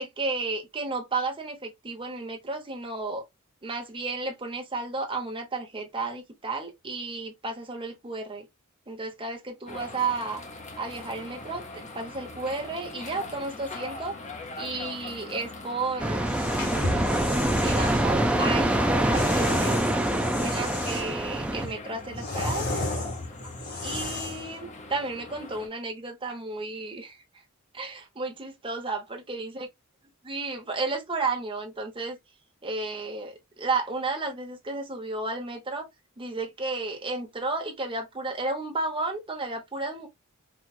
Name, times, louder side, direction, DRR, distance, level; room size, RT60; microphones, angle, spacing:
voice 1, 0.0-3.2 3.6-8.5 8.9-10.4 10.8-14.1 14.6-16.3 17.5-19.8 20.4-22.7 23.8-27.2 27.7-29.7 30.2-32.2 32.6-35.9 36.2-40.1, right 3 dB, 25° right, 1.0 m, -33 dB
sound 1, 9.7-25.7, left 2 dB, 35° left, 0.8 m, -42 dB
sound 2, 16.0-21.7, right 1 dB, 5° right, 0.5 m, -25 dB
sound 3, 16.2-18.1 19.1-21.2 21.6-24.5, left 2 dB, 50° left, 1.6 m, -33 dB
4.5 x 2.4 x 2.4 m
head